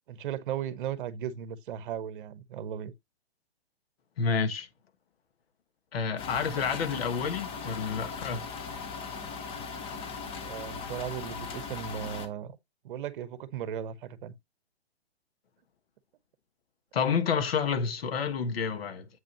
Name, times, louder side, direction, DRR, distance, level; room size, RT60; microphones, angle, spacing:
voice 1, 0.1-2.9 10.4-12.6 12.8-14.3, right 9 dB, 50° right, 1.0 m, -36 dB
voice 2, 4.2-4.7 5.9-8.5 16.9-19.1, left 6 dB, 65° left, 1.5 m, -29 dB
sound 1, 6.2-12.3, left 5 dB, 15° left, 0.8 m, -39 dB
8.0 x 5.1 x 2.9 m
hypercardioid pair, 135°, 33 cm